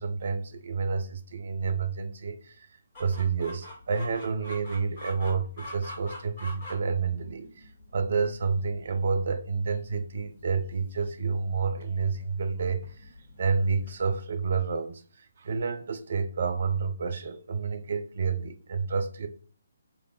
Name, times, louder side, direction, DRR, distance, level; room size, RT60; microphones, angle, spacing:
voice 1, 0.0-2.7 3.0-7.5 7.9-12.9 13.4-15.0 15.4-19.3, right 5 dB, 50° right, 0.6 m, -29 dB
Chicken rooster, 2.9-14.0, left 1 dB, 35° left, 2.0 m, -46 dB
3.9 x 3.3 x 2.6 m
figure-of-eight pair, 140°, 0 cm